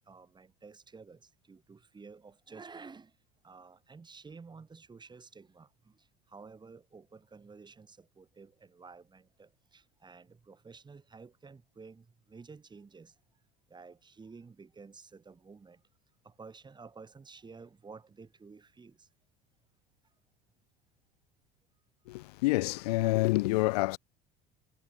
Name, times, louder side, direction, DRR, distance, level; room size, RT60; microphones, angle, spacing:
voice 1, 0.0-3.2 3.4-13.2 13.7-15.8 16.2-19.1, right 4 dB, 20° right, 6.8 m, -52 dB
voice 2, 22.1-24.0, left 22 dB, 75° left, 0.5 m, -27 dB
hypercardioid pair, 85°, 20 cm